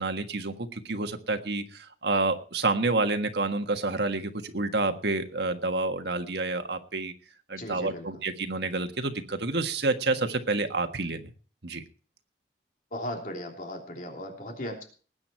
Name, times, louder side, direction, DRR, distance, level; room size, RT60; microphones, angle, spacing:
voice 1, 0.0-7.1 7.5-11.3 11.6-11.8, right 3 dB, 70° right, 6 dB, 1.6 m, -29 dB
voice 2, 7.6-8.0 12.9-14.8, left 1 dB, 50° left, 2 dB, 3.3 m, -37 dB
19.5 x 9.2 x 4.5 m, 0.40 s
head